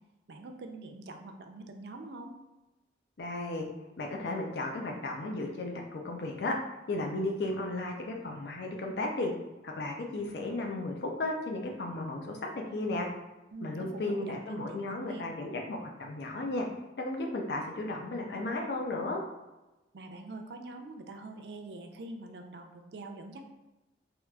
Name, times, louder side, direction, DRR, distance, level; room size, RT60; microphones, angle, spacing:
voice 1, 0.3-2.4 13.5-15.3 19.9-23.4, right 2 dB, 70° right, 4 dB, 0.4 m, -44 dB
voice 2, 3.2-3.7 4.0-6.5 6.9-9.3 9.6-13.1 13.6-16.7 17.0-19.2, left 2 dB, 70° left, 1 dB, 0.4 m, -34 dB
4.4 x 2.4 x 2.2 m, 1.0 s
head